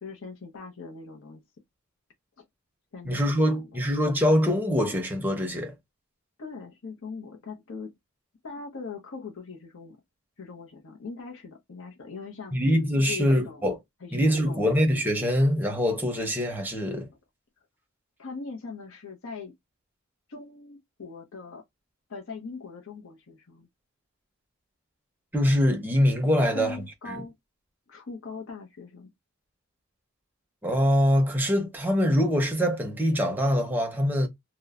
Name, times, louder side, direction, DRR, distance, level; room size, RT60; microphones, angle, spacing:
voice 1, 0.0-1.4 2.9-3.7 6.4-7.9 8.4-10.0 10.4-12.6 12.9-13.6 14.0-14.6 18.2-19.5 20.3-21.6 22.1-23.7 26.4-27.3 27.9-29.1, left 4 dB, 65° left, 0.7 m, -40 dB
voice 2, 3.0-5.7 12.5-13.8 14.1-17.1 25.3-27.2 30.6-34.3, equal, 10° right, 0.6 m, -24 dB
2.9 x 2.1 x 2.3 m
head